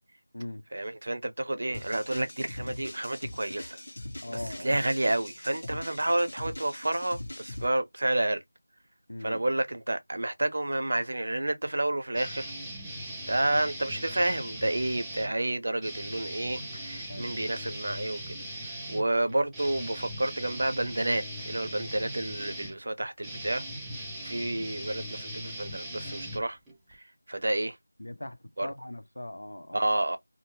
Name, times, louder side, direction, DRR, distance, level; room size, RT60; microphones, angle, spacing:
voice 1, 0.7-3.8 4.3-8.4 9.2-12.5 13.3-23.6 24.2-26.6 26.9-27.8 28.6-28.7 29.7-30.2, right 1 dB, 50° right, 0.6 m, -30 dB
sound 1, 1.7-7.7, left 1 dB, 35° left, 1.4 m, -41 dB
voice 2, 4.2-4.8 9.1-9.4 17.1-17.4 28.0-29.8, left 1 dB, 75° left, 0.8 m, -40 dB
sound 2, 12.1-15.3 15.8-26.9, equal, 5° right, 0.4 m, -39 dB
2.8 x 2.0 x 3.1 m
figure-of-eight pair, 175°, 0 cm